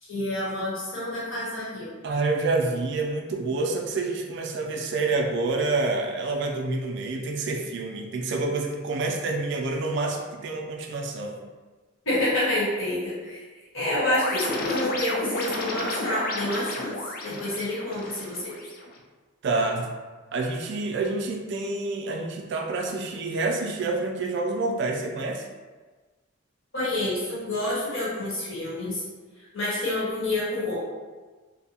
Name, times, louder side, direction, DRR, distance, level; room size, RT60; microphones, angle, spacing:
voice 1, 0.0-1.9 12.0-13.4 13.7-18.7 26.7-29.0 29.4-30.9, left 1 dB, 75° left, -8 dB, 1.1 m, -28 dB
voice 2, 2.0-11.4 17.3-17.4 19.4-19.9 20.3-25.5, right 3 dB, 55° right, 2 dB, 0.3 m, -28 dB
sound 1, 14.0-19.0, left 2 dB, 45° left, 0.3 m, -32 dB
2.6 x 2.1 x 2.7 m, 1.3 s
head